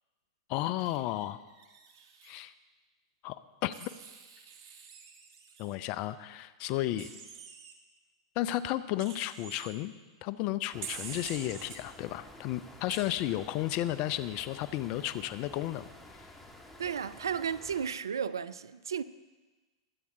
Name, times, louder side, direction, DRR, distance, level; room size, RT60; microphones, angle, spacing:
voice 1, 0.5-1.4 2.2-2.5 3.2-3.9 5.6-7.1 8.4-9.9 10.2-15.8, left 14 dB, 45° left, 0.6 m, -33 dB
Wild animals, 0.8-2.3 3.7-5.7 7.0-7.7 9.0-9.7 10.8-11.8 12.9-13.0, right 6 dB, 65° right, 1.6 m, -46 dB
sound 1, 10.7-17.9, left 1 dB, 10° left, 2.2 m, -52 dB
voice 2, 16.8-19.0, right 7 dB, 80° right, 0.5 m, -33 dB
21.5 x 8.5 x 3.8 m
hypercardioid pair, 100°, 2 cm